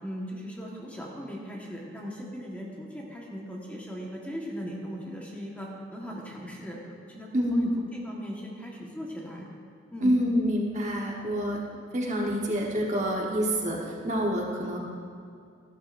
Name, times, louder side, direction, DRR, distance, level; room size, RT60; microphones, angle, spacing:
voice 1, 0.0-6.8 7.0-9.5 9.9-10.2, equal, 10° left, -3 dB, 1.3 m, -38 dB
voice 2, 7.3-7.7 10.0-11.6 11.9-14.8, equal, 40° right, -1 dB, 1.2 m, -27 dB
14.5 x 12.5 x 2.6 m, 2.3 s
head